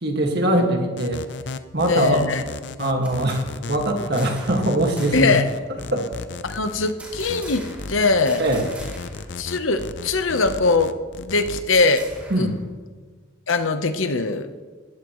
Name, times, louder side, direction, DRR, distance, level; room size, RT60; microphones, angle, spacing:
voice 1, 0.0-1.2 1.7-2.2 2.8-3.4 3.7-5.4 5.9-6.1 8.4-8.7 12.3-12.5, right 1 dB, 55° right, 2 dB, 2.0 m, -22 dB
sound 1, 1.0-11.6, left 3 dB, 60° left, 0.7 m, -34 dB
voice 2, 1.9-2.4 5.1-5.4 6.4-8.4 9.4-12.0 12.4-12.5 13.5-14.5, left 3 dB, 85° left, 8 dB, 1.0 m, -21 dB
sound 2, 3.0-4.7 5.0-5.5 7.0-8.0 8.3-9.3 9.6-9.7 10.0-12.6, equal, 5° right, 3.1 m, -43 dB
19.5 x 14.5 x 3.2 m, 1.5 s
head